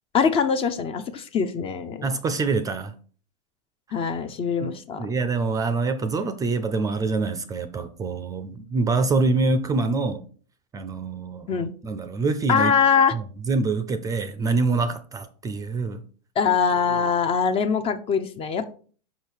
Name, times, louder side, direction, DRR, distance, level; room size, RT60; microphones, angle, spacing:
voice 1, 0.1-2.0 3.9-5.1 11.5-11.7 12.5-13.1 16.4-18.7, left 6 dB, 25° left, 10 dB, 0.7 m, -23 dB
voice 2, 2.0-2.9 3.9-4.0 4.6-4.7 5.0-10.2 10.7-12.7 13.1-16.0, right 3 dB, 15° right, 11 dB, 0.6 m, -25 dB
5.6 x 5.3 x 4.6 m, 0.42 s
hypercardioid pair, 125°, 21 cm